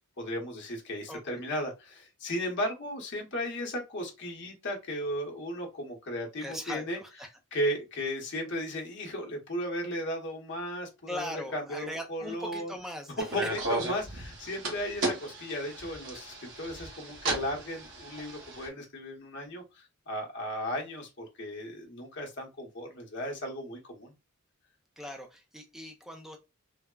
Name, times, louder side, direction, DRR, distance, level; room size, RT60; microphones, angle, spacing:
voice 1, 0.2-7.0 7.5-12.7 13.2-24.1, equal, 50° left, 1 dB, 0.9 m, -35 dB
voice 2, 1.1-1.4 6.4-7.3 11.1-13.5 25.0-26.4, equal, ahead, 3 dB, 0.4 m, -40 dB
sound 1, 13.2-18.7, right 2 dB, 55° right, 0.9 m, -35 dB
3.3 x 2.0 x 2.3 m, 0.25 s
head